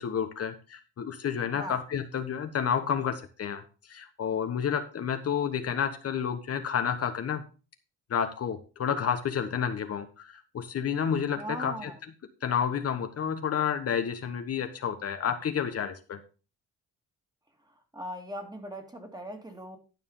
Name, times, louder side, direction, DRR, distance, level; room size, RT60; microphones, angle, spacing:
voice 1, 0.0-7.4 8.1-11.9 12.4-16.2, left 7 dB, 55° left, 7 dB, 1.2 m, -30 dB
voice 2, 11.4-12.0 17.7-19.8, equal, 15° right, 4 dB, 2.4 m, -39 dB
11.5 x 4.8 x 5.5 m, 0.34 s
cardioid pair, 90°, 30 cm